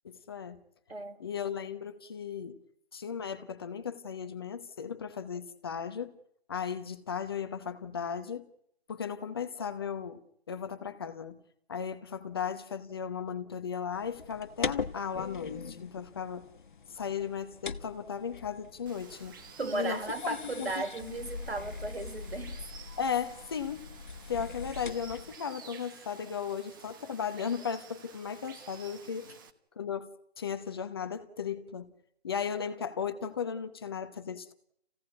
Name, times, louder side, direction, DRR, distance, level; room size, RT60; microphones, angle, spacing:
voice 1, 0.0-0.6 1.2-2.6 2.9-6.1 6.5-8.4 8.9-10.2 10.5-11.4 11.7-16.5 16.9-19.4 19.7-21.2 23.0-23.9 24.2-29.3 29.8-31.9 32.2-34.5, left 7 dB, 25° left, 0.9 m, -36 dB
voice 2, 0.9-1.3 19.6-22.6 29.2-29.3 32.5-32.6, right 3 dB, 70° right, 3.6 m, -36 dB
sound 1, 13.9-25.4, left 5 dB, 50° left, 1.2 m, -42 dB
Water, 18.9-29.5, right 6 dB, 20° right, 1.2 m, -52 dB
27.5 x 16.5 x 9.5 m
figure-of-eight pair, 155°, 32 cm